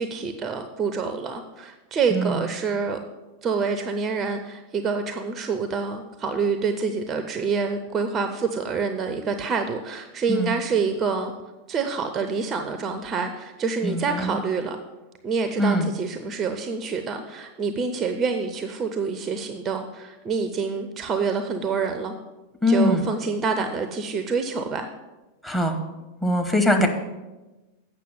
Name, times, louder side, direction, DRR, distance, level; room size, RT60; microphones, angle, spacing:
voice 1, 0.0-3.0 3.4-11.3 11.7-14.8 15.2-22.1 22.7-24.9, right 5 dB, 25° right, 8 dB, 0.7 m, -27 dB
voice 2, 2.1-2.5 10.3-10.5 13.8-14.4 15.6-15.9 22.6-23.0 25.4-25.8 26.2-26.9, left 1 dB, 5° left, 6 dB, 1.3 m, -22 dB
8.4 x 6.0 x 7.6 m, 1.1 s
figure-of-eight pair, 90°, 0 cm